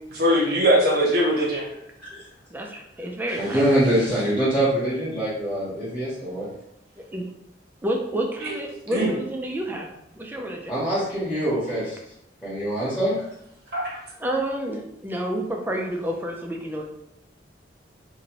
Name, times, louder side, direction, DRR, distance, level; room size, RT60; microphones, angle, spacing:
voice 1, 0.1-1.7 8.4-8.6 8.9-9.1 13.7-14.0, equal, 60° right, -3 dB, 0.9 m, -21 dB
voice 2, 2.5-3.6 7.0-7.2 7.8-9.9 10.2-10.7 14.2-16.8, right 1 dB, 10° right, 1 dB, 0.3 m, -29 dB
voice 3, 3.4-6.5 10.7-12.0 12.4-13.2, right 1 dB, 5° left, -9 dB, 0.9 m, -24 dB
2.7 x 2.6 x 2.9 m, 0.81 s
head